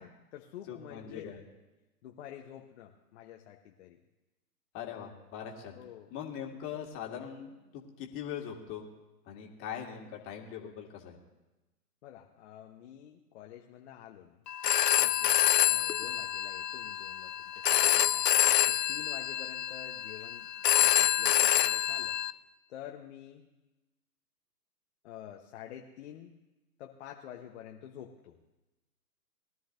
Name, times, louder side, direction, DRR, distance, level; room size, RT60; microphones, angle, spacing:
voice 1, 0.0-1.3 2.0-4.0 5.7-6.1 12.0-14.7 15.0-18.3 18.7-20.5 20.8-22.2 22.7-23.5 25.0-26.4 26.8-28.4, left 10 dB, 45° left, 2 dB, 1.0 m, -49 dB
voice 2, 0.7-1.4 4.7-5.8 6.1-8.9 9.3-11.2 18.3-18.5, left 8 dB, 25° left, 1 dB, 1.9 m, -41 dB
Telephone, 14.5-22.3, left 11 dB, 80° left, 0.7 m, -27 dB
21.5 x 12.5 x 2.6 m, 1.1 s
hypercardioid pair, 125°, 48 cm